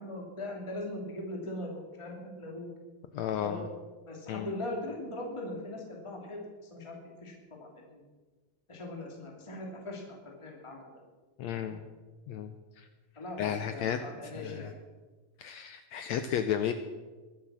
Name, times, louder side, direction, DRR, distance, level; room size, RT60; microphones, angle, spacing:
voice 1, 0.0-2.7 3.4-3.7 4.1-6.4 6.7-7.3 7.6-8.0 8.7-10.9 13.2-14.7, left 1 dB, 10° left, 0 dB, 2.3 m, -40 dB
voice 2, 3.1-3.7 4.3-4.5 11.4-11.9 12.3-12.9 13.4-14.7 15.4-16.7, left 9 dB, 80° left, 9 dB, 1.6 m, -33 dB
22.5 x 7.5 x 6.3 m, 1.3 s
omnidirectional pair, 3.9 m